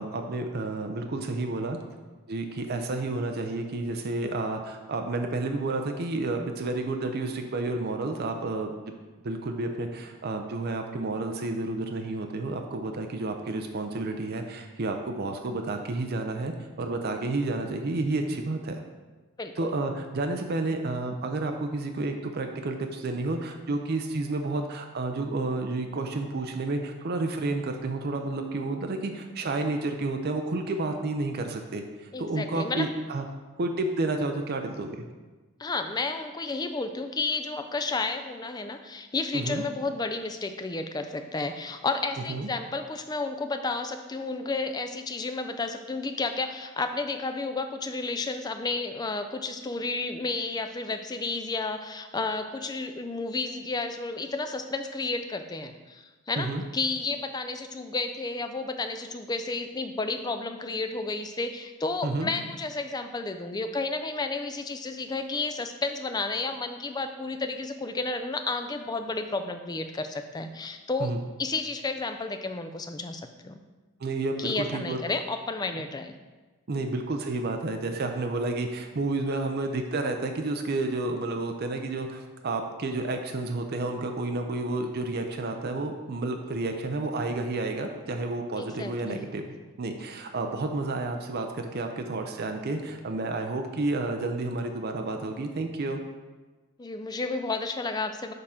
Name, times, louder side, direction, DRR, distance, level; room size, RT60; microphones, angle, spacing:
voice 1, 0.0-1.8 2.3-8.9 9.2-18.8 19.6-33.3 33.6-35.1 39.3-39.6 42.3-42.5 56.4-56.6 62.0-62.3 71.0-71.2 74.0-75.0 75.7-75.8 76.7-96.0, right 2 dB, 45° right, 4 dB, 0.5 m, -30 dB
voice 2, 19.4-19.7 32.1-32.9 35.6-71.1 71.4-73.6 74.4-76.1 88.6-89.3 96.8-98.3, left 3 dB, 20° left, 7 dB, 0.3 m, -32 dB
6.6 x 3.7 x 5.6 m, 1.2 s
head